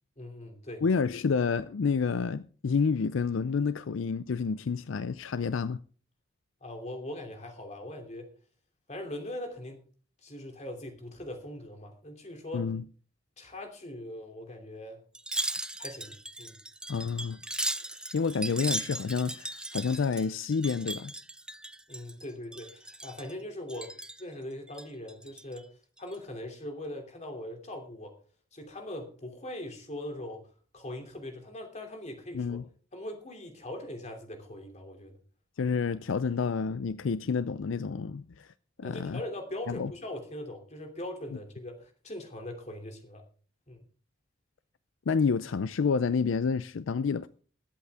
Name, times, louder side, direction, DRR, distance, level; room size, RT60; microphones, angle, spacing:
voice 1, 0.2-0.8 6.6-8.3 8.9-9.8 10.2-12.7 13.4-15.0 15.8-16.5 21.9-23.9 24.2-25.7 26.0-28.2 28.5-30.5 30.7-32.6 32.9-35.2 38.8-43.2 43.7-43.8, left 1 dB, 35° left, 2.9 m, -41 dB
voice 2, 0.8-5.8 12.5-12.8 16.9-17.4 18.1-21.1 32.3-32.6 35.6-38.5 38.8-39.2 39.7-39.9 45.1-47.3, left 5 dB, 70° left, 0.4 m, -29 dB
Wind chime, 15.1-22.2 22.5-23.3 23.7-24.2 24.7-25.6 26.0-26.2, right 1 dB, 5° right, 0.5 m, -37 dB
21.0 x 8.2 x 3.6 m
head